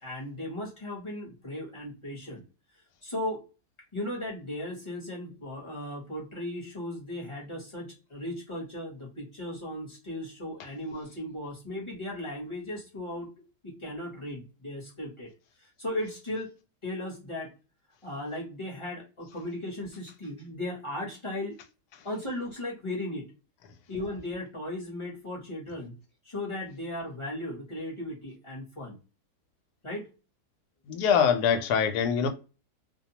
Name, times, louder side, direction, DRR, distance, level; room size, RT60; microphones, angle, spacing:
voice 1, 0.0-2.4 3.0-3.4 3.9-13.3 13.6-15.3 15.6-16.5 16.8-17.5 18.0-21.6 22.0-23.3 23.9-25.9 26.2-29.0 29.8-30.1, left 1 dB, 25° left, 0.7 m, -36 dB
voice 2, 30.9-32.3, left 7 dB, 80° left, 1.1 m, -23 dB
2.6 x 2.2 x 2.7 m
omnidirectional pair, 1.7 m